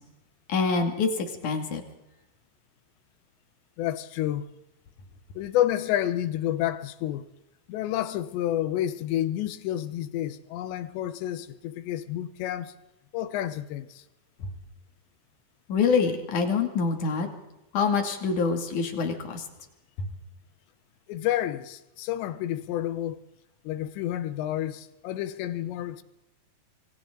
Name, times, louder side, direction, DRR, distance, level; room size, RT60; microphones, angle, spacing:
voice 1, 0.5-1.9 15.7-17.3 17.7-19.5, left 5 dB, 50° left, 3.6 m, -25 dB
voice 2, 3.8-4.5 5.4-7.3 7.7-12.7 13.1-14.0 21.1-23.2 23.6-26.0, left 12 dB, 85° left, 3.2 m, -29 dB
29.5 x 24.5 x 3.9 m
omnidirectional pair, 5.0 m